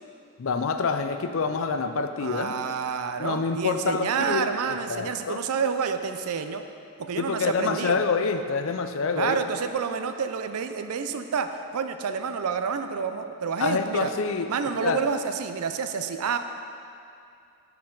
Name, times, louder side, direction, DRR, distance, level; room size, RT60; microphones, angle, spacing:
voice 1, 0.4-2.6 3.2-5.4 7.2-9.4 13.6-14.5 14.8-15.0, left 5 dB, 60° left, 7 dB, 0.4 m, -27 dB
voice 2, 2.2-6.6 7.0-8.0 9.1-14.1 14.5-16.4, right 6 dB, 80° right, 8 dB, 0.4 m, -29 dB
11.5 x 4.5 x 3.8 m, 2.5 s
head